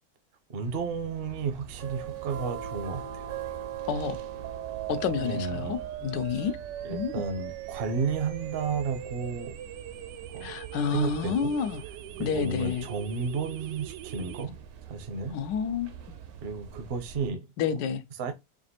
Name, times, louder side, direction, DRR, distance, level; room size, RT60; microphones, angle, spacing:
voice 1, 0.5-3.3 5.2-5.7 6.8-9.5 10.3-10.5 10.9-11.5 12.2-14.6 14.9-15.4 16.4-17.5 17.7-17.8 18.2-18.3, right 5 dB, 50° right, 0.7 m, -32 dB
sound 1, 0.6-17.3, right 9 dB, 65° right, 1.1 m, -42 dB
sound 2, 4.4-14.4, right 12 dB, 85° right, 1.2 m, -41 dB
voice 2, 4.9-6.6 6.9-7.1 10.4-11.8 12.2-12.9 15.3-15.9 17.6-18.0, left 7 dB, 80° left, 1.3 m, -29 dB
5.1 x 2.4 x 2.8 m
omnidirectional pair, 1.9 m